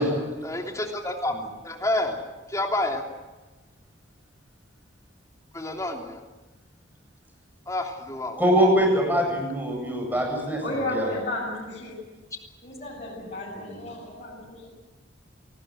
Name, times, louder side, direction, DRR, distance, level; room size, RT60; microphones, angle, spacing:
voice 1, 0.4-1.3 1.6-2.1 2.5-3.0 5.5-6.2 7.7-8.4, left 1 dB, 15° left, 2 dB, 3.2 m, -28 dB
voice 2, 8.4-10.6 10.9-11.1 13.6-13.7, equal, 10° right, 1 dB, 7.9 m, -23 dB
voice 3, 10.6-12.0 12.6-14.7, left 1 dB, 35° left, -6 dB, 7.2 m, -33 dB
28.0 x 19.5 x 7.9 m, 1.2 s
head